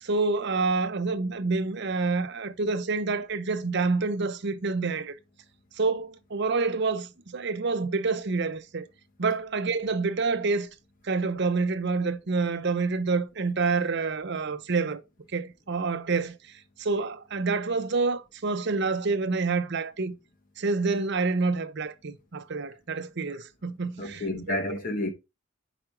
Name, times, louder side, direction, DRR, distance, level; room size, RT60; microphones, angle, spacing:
voice 1, 0.0-5.1 5.8-8.8 9.2-10.7 11.0-15.0 15.3-16.3 16.8-20.1 20.6-24.6, right 4 dB, 55° right, 0.7 m, -27 dB
voice 2, 24.0-25.1, left 1 dB, 40° left, 1.1 m, -30 dB
5.1 x 5.0 x 4.5 m
head